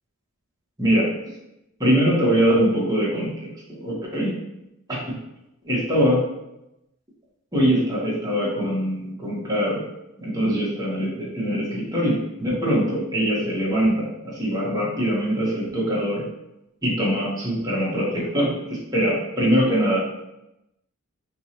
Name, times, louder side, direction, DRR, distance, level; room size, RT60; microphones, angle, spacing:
voice 1, 1.8-3.3 3.7-4.3 4.9-5.2 5.6-6.2 7.5-9.8 10.2-16.2 16.8-20.0, equal, 15° right, -6 dB, 1.1 m, -22 dB
4.4 x 2.3 x 2.8 m, 0.88 s
head